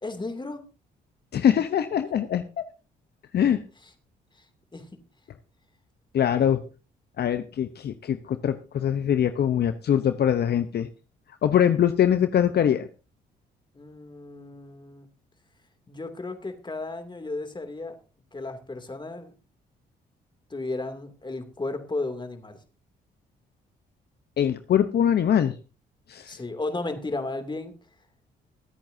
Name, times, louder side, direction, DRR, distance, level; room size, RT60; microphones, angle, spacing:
voice 1, 0.0-0.6 4.7-4.8 13.7-15.1 15.9-17.9 18.3-19.3 20.5-22.6 26.3-27.7, left 2 dB, 25° left, 7 dB, 2.7 m, -34 dB
voice 2, 1.3-2.6 3.3-3.6 6.1-6.6 7.2-10.9 11.4-12.9 24.4-25.6 26.1-26.4, left 9 dB, 60° left, 10 dB, 0.9 m, -23 dB
23.5 x 8.8 x 2.7 m, 0.32 s
supercardioid pair, 60°, 19 cm